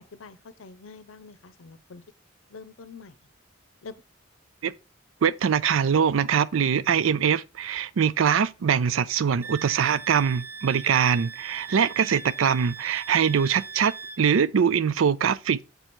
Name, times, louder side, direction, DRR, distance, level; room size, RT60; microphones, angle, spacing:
voice 1, 0.0-2.0 2.5-3.1 3.8-4.0, left 4 dB, 85° left, 0.6 m, -45 dB
voice 2, 5.2-15.6, right 7 dB, 80° right, 0.4 m, -23 dB
Wind instrument woodwind instrument, 9.4-14.2, right 5 dB, 10° right, 0.3 m, -40 dB
6.8 x 4.5 x 4.2 m
head